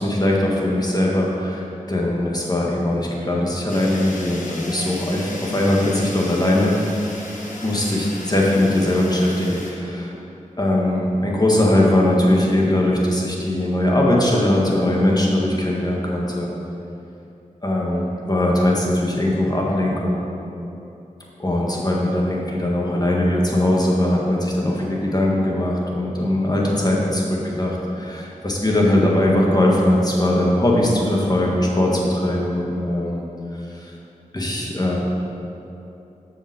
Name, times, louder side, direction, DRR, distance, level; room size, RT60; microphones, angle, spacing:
voice 1, 0.0-6.8 7.6-10.1 10.6-16.5 17.6-20.2 21.4-33.2 33.5-33.9 34.3-35.0, left 1 dB, 30° left, -3 dB, 1.6 m, -20 dB
Fire, 3.7-9.7, left 1 dB, 70° left, 1.3 m, -36 dB
6.7 x 5.3 x 6.1 m, 2.8 s
cardioid pair, 40°, 14 cm